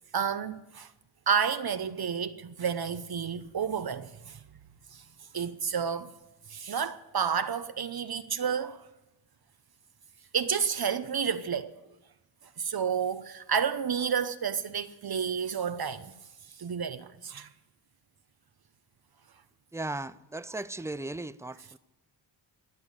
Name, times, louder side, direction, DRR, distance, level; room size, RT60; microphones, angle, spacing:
voice 1, 0.1-0.9 1.3-4.4 4.9-5.0 5.3-6.1 6.5-8.8 10.3-11.7 12.6-16.1 16.6-17.5, right 7 dB, 50° right, 0.9 m, -30 dB
voice 2, 19.7-21.8, right 2 dB, 5° right, 0.6 m, -37 dB
18.5 x 7.0 x 9.8 m
cardioid pair, 55°, 47 cm